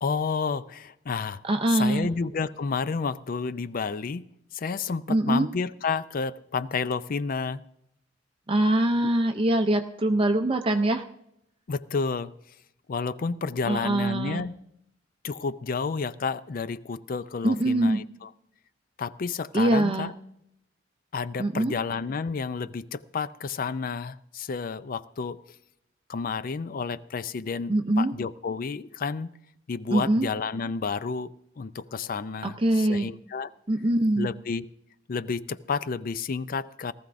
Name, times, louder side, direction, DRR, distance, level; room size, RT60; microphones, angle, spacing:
voice 1, 0.0-1.4 1.7-4.2 4.5-7.6 11.7-12.3 12.9-14.5 15.2-18.3 19.0-20.1 21.1-25.4 26.1-29.3 29.7-31.3 31.6-33.5 34.2-34.7 35.1-36.9, left 5 dB, 45° left, 15 dB, 0.4 m, -30 dB
voice 2, 1.4-2.1 5.1-5.5 8.5-11.0 13.6-14.4 17.4-18.0 19.5-20.1 21.4-21.8 27.7-28.1 29.9-30.3 32.4-33.1 33.7-34.3, right 1 dB, 25° right, 6 dB, 0.5 m, -23 dB
18.5 x 14.0 x 2.6 m, 0.80 s
head